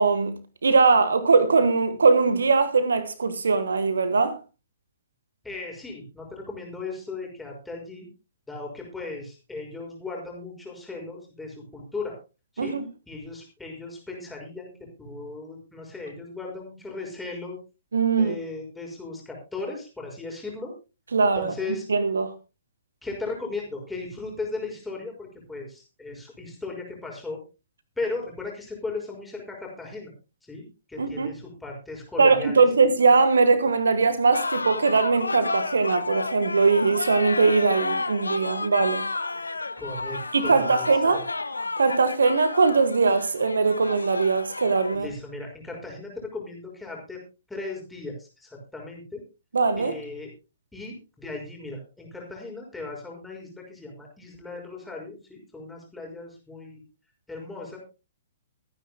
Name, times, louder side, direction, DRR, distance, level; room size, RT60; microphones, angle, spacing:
voice 1, 0.0-4.4 12.6-12.8 17.9-18.4 21.1-21.5 21.9-22.3 31.0-31.3 32.2-39.0 40.3-41.2 41.8-45.1 49.5-50.0, right 4 dB, 70° right, 1.3 m, -21 dB
voice 2, 5.4-8.1 8.5-12.2 12.5-12.8 13.1-17.6 18.2-20.7 21.4-21.8 23.0-27.4 28.0-30.1 30.4-32.7 39.8-41.2 44.9-47.2 47.5-49.2 49.8-50.3 50.7-56.8 57.3-57.8, left 3 dB, 5° left, 5.9 m, -37 dB
sound 1, 34.3-45.0, left 3 dB, 80° left, 1.0 m, -31 dB
24.0 x 9.9 x 2.2 m
figure-of-eight pair, 120°, 0 cm